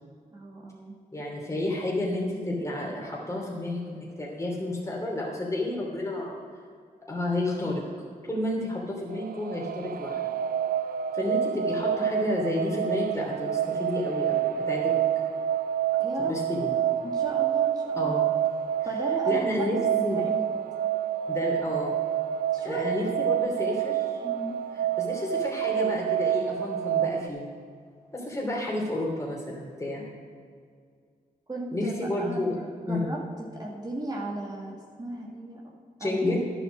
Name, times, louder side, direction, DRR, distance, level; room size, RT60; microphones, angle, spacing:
voice 1, 0.3-0.9 16.0-16.3 17.0-18.1 18.8-20.6 22.5-23.1 24.2-24.6 31.5-33.2 33.5-36.3, right 1 dB, 25° right, -2 dB, 1.8 m, -36 dB
voice 2, 1.1-6.3 7.1-7.8 8.3-10.2 11.1-15.0 16.2-16.8 18.0-18.3 19.3-19.8 20.0-20.2 21.3-22.0 22.6-24.2 24.7-27.5 28.1-30.1 31.7-32.5 32.9-33.1 36.0-36.5, left 1 dB, 20° left, -3 dB, 2.9 m, -30 dB
sound 1, 9.1-27.3, right 10 dB, 75° right, 0.5 m, -28 dB
10.5 x 8.1 x 6.4 m, 2.1 s
cardioid pair, 60°, 15 cm